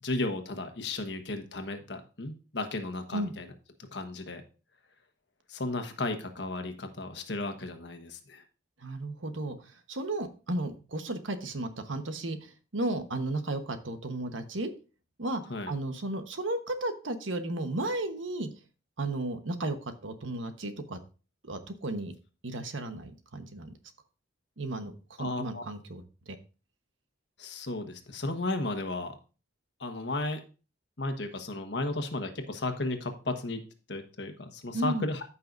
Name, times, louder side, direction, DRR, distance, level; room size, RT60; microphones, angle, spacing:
voice 1, 0.0-3.5 3.9-4.4 5.5-8.4 15.5-15.7 25.2-25.6 27.4-29.2 29.8-30.4 31.0-33.6 33.9-35.2, left 2 dB, 65° left, 5 dB, 1.3 m, -34 dB
voice 2, 8.8-9.6 9.9-14.7 15.2-15.4 15.7-18.5 19.0-21.0 21.4-22.1 22.4-23.7 24.6-24.9 25.2-26.4 34.7-35.1, right 2 dB, 90° right, 8 dB, 1.2 m, -34 dB
14.0 x 5.6 x 2.6 m, 0.34 s
head